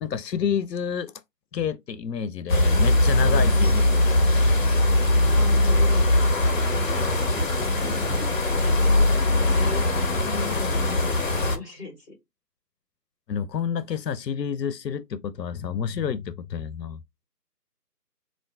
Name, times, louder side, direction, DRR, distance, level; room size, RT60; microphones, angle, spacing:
voice 1, 0.0-1.1 1.5-4.5 13.3-17.0, left 7 dB, 90° left, 0.5 m, -29 dB
sound 1, 2.5-11.6, left 1 dB, 50° left, 0.9 m, -21 dB
voice 2, 3.2-3.8 5.3-6.1 6.9-8.8 9.5-9.8 10.3-10.6 10.9-11.2 11.4-12.2, left 3 dB, 20° left, 1.8 m, -39 dB
4.4 x 2.4 x 2.2 m
figure-of-eight pair, 165°, 49 cm